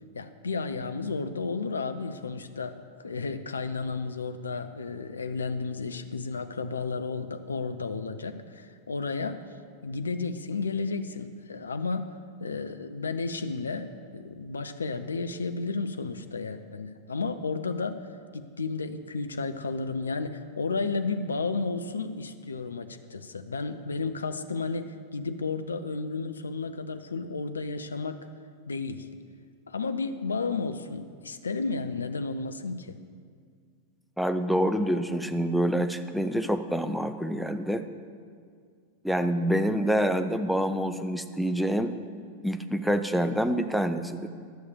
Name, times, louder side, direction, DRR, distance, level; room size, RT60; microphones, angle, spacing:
voice 1, 0.1-9.4 9.8-12.1 12.4-18.1 18.3-28.3 28.7-29.1 29.7-33.0, left 4 dB, 75° left, 9 dB, 0.4 m, -32 dB
voice 2, 34.2-37.8 39.0-41.9 42.4-44.3, equal, ahead, 9 dB, 0.5 m, -26 dB
11.0 x 6.5 x 6.8 m, 2.1 s
figure-of-eight pair, 90°, 0 cm